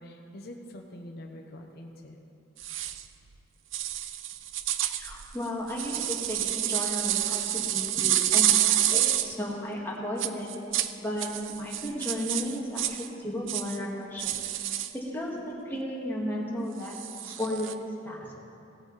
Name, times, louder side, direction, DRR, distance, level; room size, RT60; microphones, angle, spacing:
voice 1, 0.0-2.2 7.6-7.7 16.8-17.1, left 1 dB, 55° left, 2 dB, 0.8 m, -45 dB
sound 1, 2.6-3.0 3.7-9.4 10.2-10.9 11.2-13.1 13.5-13.8 14.2-14.9 16.9-17.7, right 12 dB, 80° right, 0.5 m, -28 dB
voice 2, 5.0-10.5 11.0-14.7 14.9-17.0 17.2-18.2, equal, 10° left, -4 dB, 1.8 m, -34 dB
17.0 x 8.8 x 4.0 m, 2.8 s
head